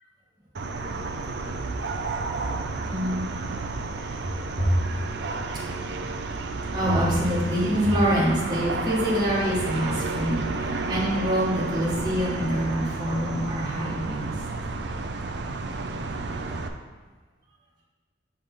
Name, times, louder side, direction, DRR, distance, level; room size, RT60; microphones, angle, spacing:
sound 1, 0.5-16.7, right 3 dB, 65° right, 0.5 m, -31 dB
voice 1, 2.9-3.2 4.5-4.8 6.7-14.3, equal, 20° right, -8 dB, 1.5 m, -25 dB
6.6 x 3.5 x 5.4 m, 1.4 s
head